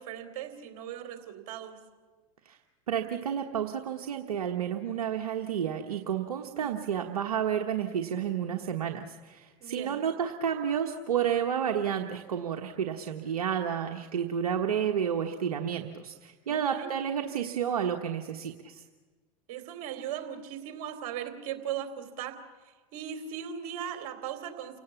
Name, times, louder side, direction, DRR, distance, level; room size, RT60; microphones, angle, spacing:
voice 1, 0.0-1.8 6.4-6.8 9.6-10.0 16.5-16.9 19.5-22.4 22.6-24.8, right 9 dB, 60° right, 7 dB, 3.2 m, -38 dB
voice 2, 2.9-18.8, right 8 dB, 85° right, 3 dB, 1.3 m, -31 dB
29.5 x 17.5 x 7.2 m, 1.4 s
hypercardioid pair, 100°, 19 cm